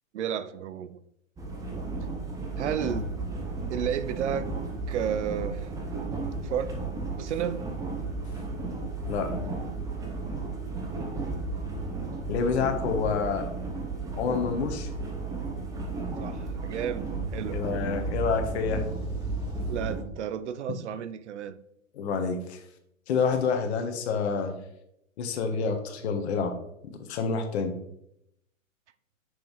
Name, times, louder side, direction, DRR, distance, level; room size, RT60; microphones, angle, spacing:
voice 1, 0.1-1.0 2.6-3.1 3.7-4.5 4.9-5.7 6.4-6.7 7.2-7.7 12.2-12.4 16.2-17.6 19.7-21.6, right 9 dB, 60° right, 13 dB, 0.5 m, -32 dB
sound 1, 1.4-20.0, right 3 dB, 10° right, 0.7 m, -33 dB
voice 2, 12.3-13.4 14.2-14.9 17.5-18.8 21.9-22.6 23.1-24.5 25.2-26.5 26.9-27.7, left 5 dB, 50° left, 6 dB, 1.2 m, -28 dB
6.2 x 5.4 x 3.1 m, 0.78 s
hypercardioid pair, 130°, 41 cm